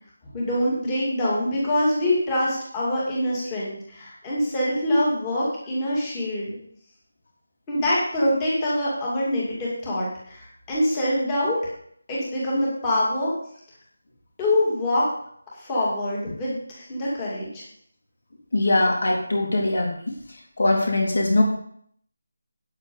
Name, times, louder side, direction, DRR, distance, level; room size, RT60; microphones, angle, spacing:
voice 1, 0.3-6.6 7.7-11.6 12.1-13.3 14.4-15.1 15.6-17.6, left 1 dB, 10° left, -6 dB, 2.5 m, -24 dB
voice 2, 18.5-19.9 20.6-21.4, left 2 dB, 55° left, 0 dB, 3.7 m, -21 dB
9.1 x 8.5 x 5.5 m, 0.65 s
figure-of-eight pair, 180°, 0 cm